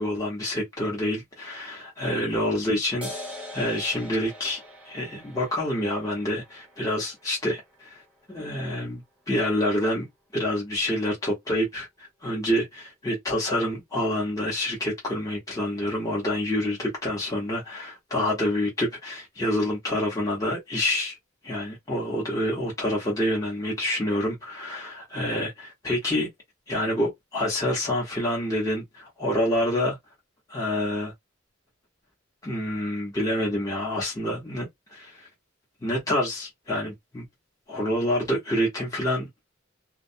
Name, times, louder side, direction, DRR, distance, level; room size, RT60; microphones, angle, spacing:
voice 1, 0.0-3.1 3.5-4.6 4.9-8.0 8.3-9.0 9.3-10.1 10.3-21.2 21.4-26.3 26.7-30.0 30.5-31.1 32.4-35.3 35.8-37.2 37.7-39.3, left 1 dB, 15° left, 0.9 m, -27 dB
sound 1, 3.0-10.0, left 1 dB, 5° right, 0.8 m, -44 dB
2.3 x 2.1 x 2.6 m
head